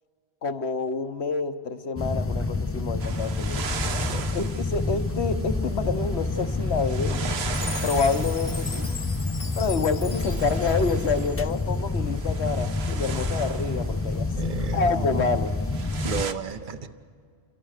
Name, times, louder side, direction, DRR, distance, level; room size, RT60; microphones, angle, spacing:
voice 1, 0.4-3.6 4.3-7.2 7.8-8.9 9.6-15.5, left 4 dB, 85° left, 9 dB, 1.4 m, -28 dB
sound 1, 2.0-16.2, left 3 dB, 20° left, 0.5 m, -28 dB
sound 2, 3.0-16.3, right 6 dB, 75° right, 1.2 m, -38 dB
Chime, 7.5-11.8, left 5 dB, 40° left, 0.8 m, -40 dB
voice 2, 14.4-15.3 16.0-16.9, right 6 dB, 50° right, 11 dB, 1.1 m, -33 dB
29.0 x 22.0 x 6.6 m, 2.2 s
omnidirectional pair, 1.1 m